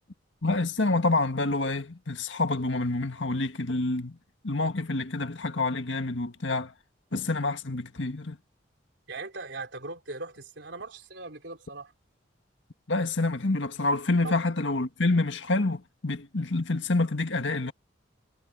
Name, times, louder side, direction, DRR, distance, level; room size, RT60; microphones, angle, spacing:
voice 1, 0.4-4.2 4.4-6.7 7.1-8.4 12.9-17.7, left 2 dB, 75° left, 1.7 m, -27 dB
voice 2, 9.1-11.9 14.2-14.4, right 3 dB, 65° right, 3.8 m, -39 dB
head